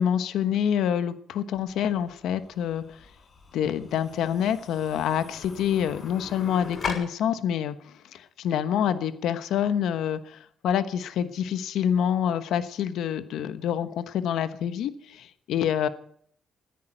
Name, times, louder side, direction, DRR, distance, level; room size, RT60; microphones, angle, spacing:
voice 1, 0.0-3.0 3.5-15.9, left 9 dB, 80° left, 11 dB, 1.1 m, -27 dB
sound 1, 1.5-6.9, left 4 dB, 50° left, 6.3 m, -40 dB
13.5 x 10.5 x 9.1 m, 0.62 s
cardioid pair, 90°, 0 cm